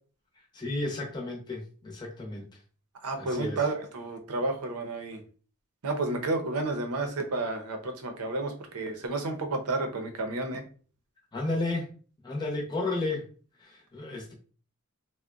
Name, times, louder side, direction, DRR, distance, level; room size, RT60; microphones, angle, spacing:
voice 1, 0.5-2.6 3.2-3.6 11.3-11.9 12.2-13.3 13.6-14.3, left 2 dB, 20° left, 0.7 m, -33 dB
voice 2, 3.0-5.2 5.8-10.6, right 2 dB, 85° right, 0.6 m, -31 dB
3.7 x 2.1 x 2.3 m
head